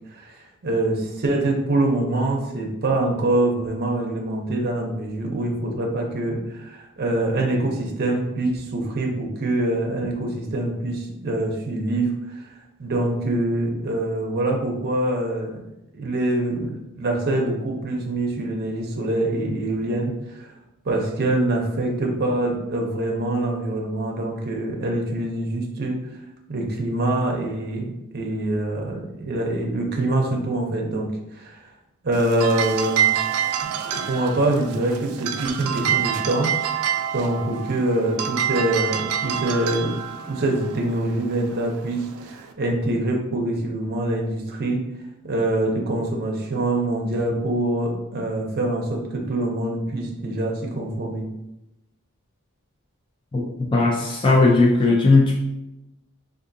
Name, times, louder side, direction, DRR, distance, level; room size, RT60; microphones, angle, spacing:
voice 1, 0.1-12.4 12.8-15.6 15.9-20.5 20.8-26.0 26.5-31.6 32.0-33.1 33.6-36.5 37.1-39.9 40.3-44.8 45.2-51.2, right 1 dB, 50° right, 0 dB, 0.6 m, -25 dB
sound 1, 32.1-42.5, right 9 dB, 85° right, 0.3 m, -27 dB
voice 2, 53.7-55.3, left 3 dB, 25° left, -2 dB, 0.4 m, -17 dB
3.6 x 2.5 x 2.6 m, 0.91 s
head